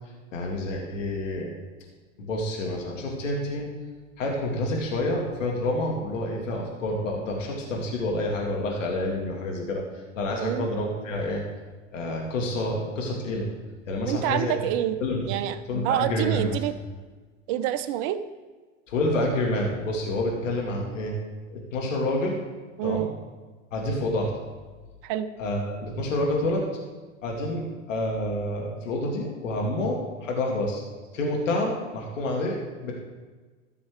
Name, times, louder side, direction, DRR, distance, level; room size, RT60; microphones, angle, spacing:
voice 1, 0.3-1.5 2.2-3.7 4.2-11.4 11.9-13.5 13.9-14.7 15.0-15.3 15.7-16.6 18.9-21.2 21.5-22.4 22.8-23.1 23.7-24.3 25.4-26.7 27.2-30.8 31.1-32.9, left 1 dB, 80° left, 0 dB, 2.1 m, -28 dB
voice 2, 14.0-15.0 15.3-15.6 15.8-16.8 17.5-18.2 22.8-23.1 25.0-25.3, right 11 dB, 50° right, 11 dB, 0.9 m, -27 dB
14.0 x 6.9 x 3.5 m, 1.3 s
hypercardioid pair, 90°, 37 cm